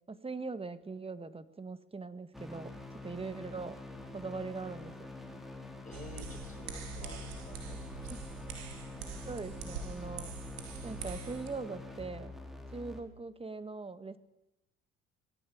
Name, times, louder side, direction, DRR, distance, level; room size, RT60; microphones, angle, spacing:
voice 1, 0.1-3.8 4.1-4.9 8.1-8.2 9.2-10.3 10.8-12.4 12.7-14.2, right 4 dB, 20° right, 13 dB, 1.6 m, -41 dB
sound 1, 2.3-13.0, left 2 dB, ahead, 3.7 m, -46 dB
voice 2, 5.8-7.8, left 4 dB, 25° left, 5 dB, 4.9 m, -51 dB
sound 2, 5.9-11.5, right 4 dB, 90° right, 3.5 m, -43 dB
20.5 x 14.5 x 8.7 m, 0.93 s
hypercardioid pair, 75°, 30 cm